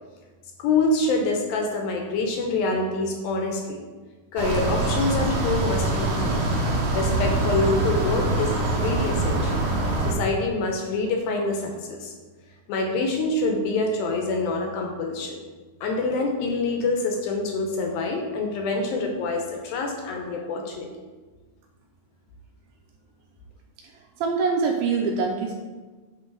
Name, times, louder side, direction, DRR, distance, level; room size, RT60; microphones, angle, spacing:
voice 1, 0.6-3.8 4.3-6.4 6.9-9.7 10.0-12.1 12.7-15.4 15.8-20.9, left 3 dB, 75° left, 2 dB, 2.3 m, -26 dB
sound 1, 4.4-10.1, right 2 dB, 65° right, 2.2 m, -24 dB
voice 2, 23.8-25.5, right 4 dB, 85° right, 2 dB, 2.2 m, -25 dB
9.9 x 3.3 x 3.8 m, 1.3 s
omnidirectional pair, 4.6 m